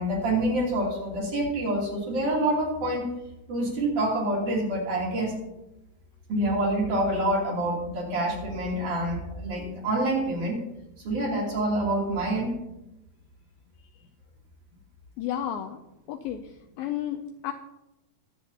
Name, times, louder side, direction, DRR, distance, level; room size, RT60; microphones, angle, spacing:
voice 1, 0.0-3.1 3.5-5.3 6.3-10.6 11.0-12.5, right 1 dB, 50° right, -3 dB, 4.2 m, -27 dB
voice 2, 15.2-15.8 16.1-16.5 16.8-17.5, left 10 dB, 85° left, 6 dB, 2.1 m, -32 dB
22.5 x 8.1 x 2.8 m, 0.93 s
omnidirectional pair, 4.7 m